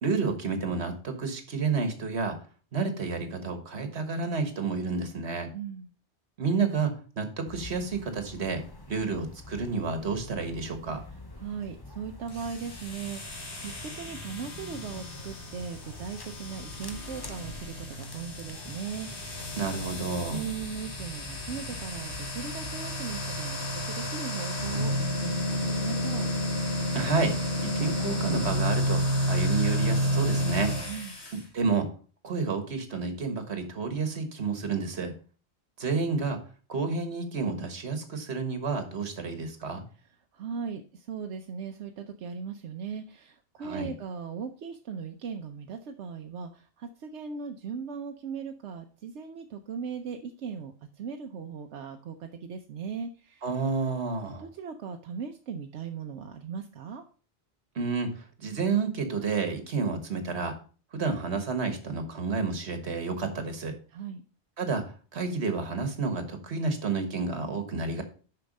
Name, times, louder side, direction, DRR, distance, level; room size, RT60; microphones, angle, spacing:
voice 1, 0.0-2.4 2.7-5.5 6.4-11.0 19.6-20.5 26.9-30.7 31.5-31.9 32.2-35.1 35.8-36.4 36.7-39.8 43.6-43.9 53.4-54.5 57.7-60.5 60.9-63.7 64.6-64.8 65.1-68.0, right 4 dB, 70° right, 7 dB, 1.7 m, -30 dB
voice 2, 5.5-5.9 11.4-19.5 20.3-26.3 30.9-31.2 40.3-53.5 54.4-57.0 63.9-64.2, right 6 dB, 90° right, 4 dB, 1.0 m, -38 dB
sound 1, 7.5-24.1, left 2 dB, 25° left, 0.8 m, -46 dB
sound 2, 12.3-31.4, equal, 75° left, 2.3 m, -31 dB
6.8 x 5.7 x 5.2 m, 0.39 s
omnidirectional pair, 1.1 m